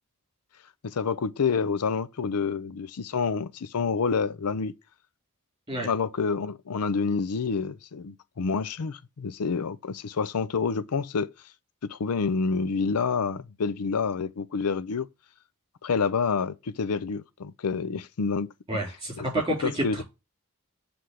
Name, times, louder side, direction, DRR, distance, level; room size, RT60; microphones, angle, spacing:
voice 1, 0.8-4.7 5.7-11.3 11.8-15.1 15.8-18.5 19.2-19.3 19.6-20.0, left 5 dB, 85° left, 0.6 m, -28 dB
voice 2, 18.7-20.0, right 1 dB, 20° right, 4.1 m, -29 dB
7.7 x 3.5 x 6.3 m
head